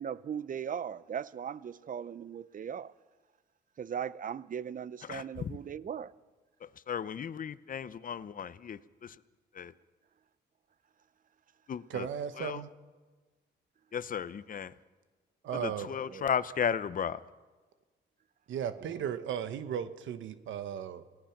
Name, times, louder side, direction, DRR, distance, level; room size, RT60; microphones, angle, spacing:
voice 1, 0.0-2.9 3.8-6.1 16.1-16.3 18.9-19.1, right 8 dB, 45° right, 0.7 m, -38 dB
voice 2, 6.9-8.8 9.6-9.7 11.7-12.0 12.4-12.6 13.9-14.7 15.5-17.2, left 7 dB, 45° left, 0.8 m, -34 dB
voice 3, 11.9-12.7 15.4-15.9 18.5-21.0, right 8 dB, 75° right, 1.2 m, -36 dB
26.5 x 18.0 x 6.0 m
cardioid pair, 90°, 20 cm